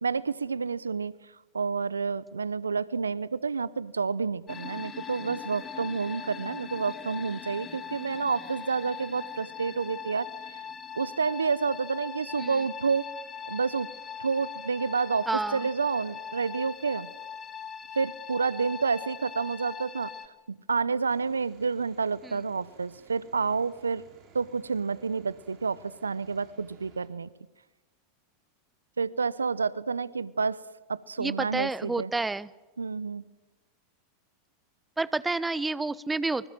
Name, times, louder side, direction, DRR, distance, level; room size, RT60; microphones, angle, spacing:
voice 1, 0.0-1.1 1.5-10.6 11.0-13.1 13.5-13.9 14.2-17.1 17.9-20.1 20.5-24.0 24.3-27.3 29.0-30.6 30.9-32.1 32.8-33.2, right 5 dB, 90° right, 20 dB, 0.8 m, -29 dB
sound 1, 4.5-20.3, left 7 dB, 25° left, 2.5 m, -41 dB
voice 2, 15.3-15.6 22.2-22.4 31.2-32.5 35.0-36.5, right 3 dB, 10° right, 17 dB, 1.1 m, -29 dB
sound 2, 21.1-27.1, right 6 dB, 45° right, 6.5 m, -58 dB
27.0 x 25.0 x 7.6 m, 1.1 s
hypercardioid pair, 90°, 0 cm